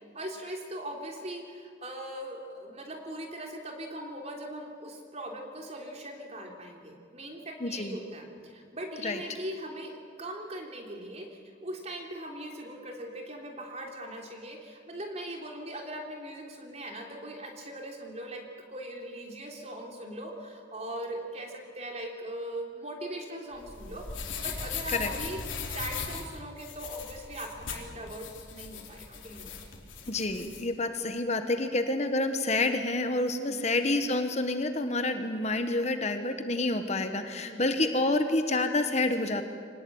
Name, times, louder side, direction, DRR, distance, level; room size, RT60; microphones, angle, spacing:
voice 1, 0.1-11.3 11.6-18.4 18.7-24.1 24.4-29.5 33.4-33.6 37.4-37.6, right 1 dB, 35° right, 1 dB, 3.5 m, -40 dB
voice 2, 7.6-8.0 9.0-9.2 25.0-25.1 30.1-39.4, left 2 dB, 35° left, 7 dB, 1.3 m, -28 dB
sound 1, 23.5-30.6, left 5 dB, 90° left, 3.5 m, -39 dB
25.5 x 19.0 x 8.8 m, 2.2 s
head